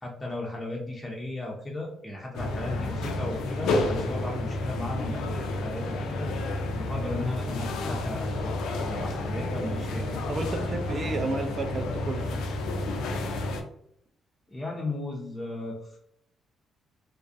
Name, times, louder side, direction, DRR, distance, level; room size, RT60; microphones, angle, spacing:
voice 1, 0.0-6.3 6.8-10.2 11.0-11.7 14.5-16.0, left 2 dB, 15° left, -3 dB, 0.5 m, -36 dB
sound 1, 2.3-13.6, left 2 dB, 85° left, 0.3 m, -30 dB
voice 2, 10.3-12.4, right 2 dB, 45° right, 5 dB, 0.4 m, -31 dB
2.3 x 2.0 x 2.6 m, 0.71 s
cardioid pair, 90°, 0 cm